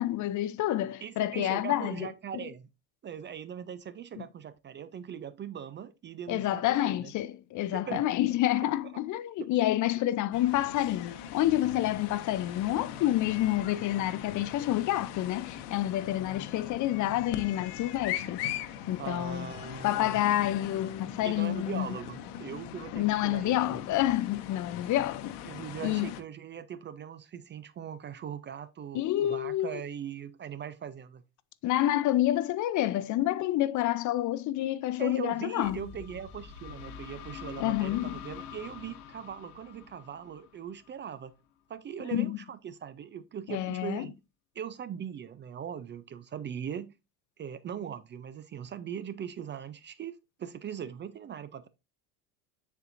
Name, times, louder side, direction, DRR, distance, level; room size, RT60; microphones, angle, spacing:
voice 1, 0.0-2.1 2.3-2.4 4.2-4.3 6.3-18.5 18.9-19.5 19.8-21.9 22.9-25.4 25.8-26.1 28.9-29.8 31.6-35.8 37.6-38.2 42.1-42.4 43.5-44.1, left 14 dB, 45° left, 0.5 m, -28 dB
voice 2, 1.0-2.7 3.0-7.1 7.7-8.4 19.0-20.2 21.2-23.8 25.4-31.2 35.0-41.3 41.7-44.2 44.6-46.9 47.4-51.7, right 8 dB, 25° right, 0.4 m, -40 dB
sound 1, 10.3-26.2, left 10 dB, 65° left, 1.0 m, -41 dB
sound 2, 35.6-41.3, left 7 dB, 85° left, 1.1 m, -46 dB
9.3 x 4.5 x 2.5 m
supercardioid pair, 110°, 43 cm